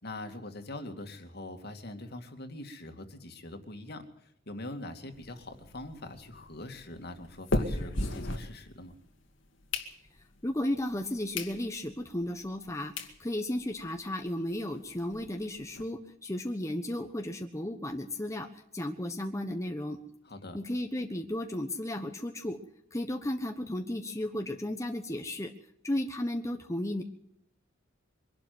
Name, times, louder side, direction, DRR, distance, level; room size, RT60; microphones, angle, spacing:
voice 1, 0.0-8.9 20.2-20.6, left 1 dB, 55° left, 6 dB, 2.4 m, -43 dB
sound 1, 5.1-9.1 9.5-10.4 10.9-11.0 11.3-11.6 12.0-12.1 12.7-12.8 13.0-13.2 13.6-13.7 13.9-14.0 14.3-14.4 14.7-15.8, left 2 dB, 75° left, 2.3 m, -36 dB
voice 2, 10.4-20.0 20.5-22.6 22.9-25.5 25.8-27.0, left 1 dB, 15° left, 4 dB, 1.2 m, -34 dB
24.0 x 12.0 x 9.6 m, 0.72 s
head